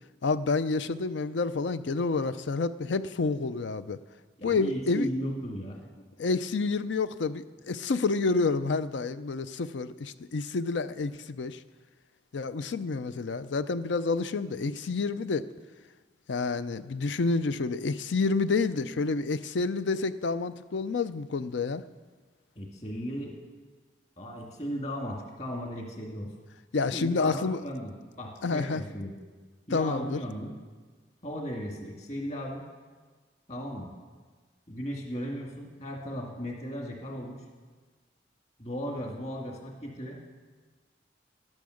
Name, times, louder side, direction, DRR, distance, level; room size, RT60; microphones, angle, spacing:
voice 1, 0.2-4.0 4.4-5.1 6.2-11.6 12.3-15.5 16.3-21.8 26.7-27.6 28.4-28.8 29.7-30.2, left 4 dB, 90° left, 13 dB, 0.5 m, -29 dB
voice 2, 4.4-5.7 22.6-23.3 24.2-26.3 26.9-29.1 29.7-30.5 31.2-32.6 33.5-33.9 34.7-37.4 38.6-40.3, equal, 40° left, -1 dB, 2.1 m, -36 dB
12.0 x 10.5 x 6.4 m, 1.4 s
head